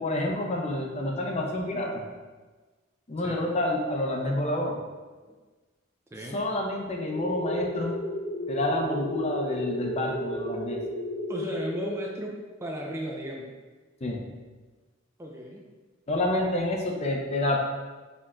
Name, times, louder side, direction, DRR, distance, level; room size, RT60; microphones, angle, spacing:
voice 1, 0.0-2.0 3.1-4.8 6.3-8.0 8.5-10.8 14.0-14.2 16.1-17.6, left 1 dB, 35° left, 1 dB, 0.5 m, -28 dB
voice 2, 6.1-6.4 11.3-13.5 15.2-15.6, equal, 15° right, -1 dB, 0.4 m, -35 dB
sound 1, 6.9-11.9, left 1 dB, 60° left, 0.9 m, -33 dB
4.2 x 2.4 x 4.2 m, 1.3 s
head